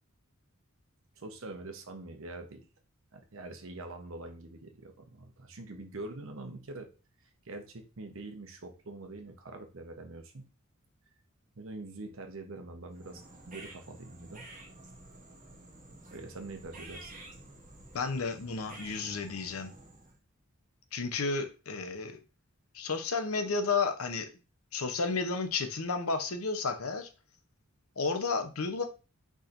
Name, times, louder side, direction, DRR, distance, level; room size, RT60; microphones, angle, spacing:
voice 1, 1.2-2.6 3.1-6.9 7.4-10.5 11.5-14.4 16.1-17.1, right 2 dB, 65° right, 0.9 m, -44 dB
sound 1, 12.9-20.2, right 2 dB, 35° right, 1.5 m, -51 dB
voice 2, 17.9-19.7 20.9-22.2 22.7-24.3 24.7-27.1 28.0-28.8, left 4 dB, 75° left, 0.7 m, -32 dB
4.8 x 4.3 x 2.5 m
head